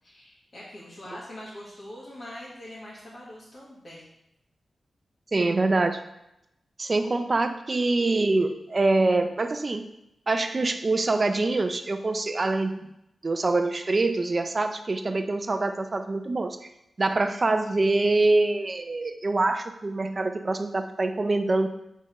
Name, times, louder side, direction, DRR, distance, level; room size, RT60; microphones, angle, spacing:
voice 1, 0.0-4.1 7.0-7.2, left 1 dB, 40° left, -9 dB, 1.7 m, -43 dB
voice 2, 5.3-6.0 6.8-9.9 10.3-12.9 13.2-16.6 17.0-21.7, right 2 dB, 35° right, 7 dB, 0.5 m, -25 dB
6.5 x 3.7 x 5.3 m, 0.86 s
wide cardioid pair, 130°, 0 cm